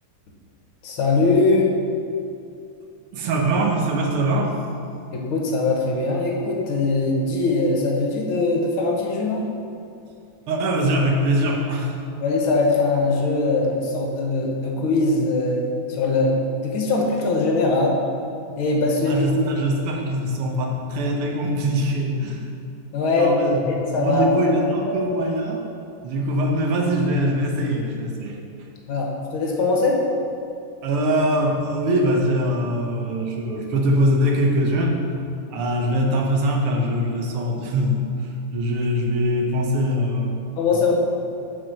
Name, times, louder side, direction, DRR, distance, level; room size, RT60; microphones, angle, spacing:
voice 1, 0.8-1.7 5.1-9.5 12.2-18.0 18.6-19.3 22.9-23.3 23.7-24.6 24.9-25.2 28.9-30.0 40.6-40.9, left 3 dB, 70° left, -1 dB, 1.8 m, -21 dB
voice 2, 3.1-4.6 10.5-12.0 19.1-22.5 23.2-25.6 26.0-28.4 30.8-35.0 35.5-40.9, right 1 dB, 80° right, 1 dB, 1.8 m, -22 dB
6.4 x 4.4 x 6.3 m, 2.6 s
omnidirectional pair, 2.4 m